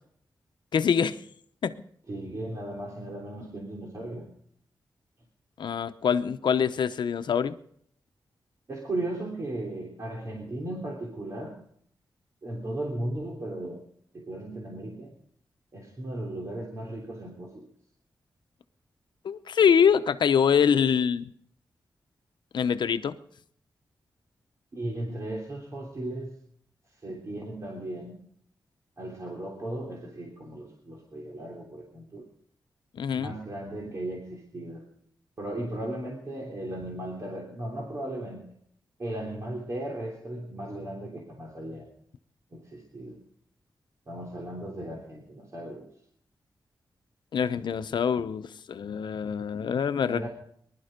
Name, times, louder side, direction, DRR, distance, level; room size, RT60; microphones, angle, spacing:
voice 1, 0.7-1.2 1.6-1.7 5.6-7.6 19.2-21.3 22.5-23.2 33.0-33.3 47.3-50.2, left 7 dB, 80° left, 11 dB, 0.8 m, -24 dB
voice 2, 2.1-4.3 8.7-11.6 12.4-13.8 14.1-15.1 15.7-17.7 24.7-26.3 27.0-28.2 29.0-32.2 33.1-34.8 35.4-38.5 39.0-41.9 42.5-43.2 44.1-45.9 50.1-50.3, right 1 dB, 40° right, -1 dB, 3.1 m, -36 dB
20.5 x 12.0 x 5.2 m, 0.65 s
wide cardioid pair, 125°, 8 cm